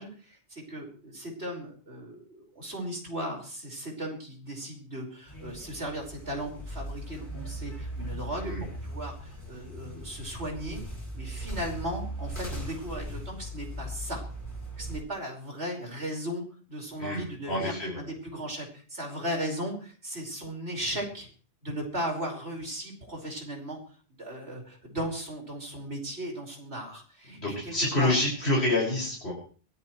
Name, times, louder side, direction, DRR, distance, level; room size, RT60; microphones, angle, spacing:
voice 1, 0.0-10.8 11.1-14.2 14.8-16.4 16.7-21.3 21.6-23.8 24.2-28.2, equal, 85° right, 1 dB, 5.4 m, -36 dB
sound 1, 5.3-15.0, right 1 dB, 50° left, 7.7 m, -39 dB
voice 2, 17.0-18.0 27.3-29.3, left 1 dB, 80° left, -5 dB, 6.3 m, -28 dB
23.0 x 17.0 x 3.2 m, 0.41 s
omnidirectional pair, 1.1 m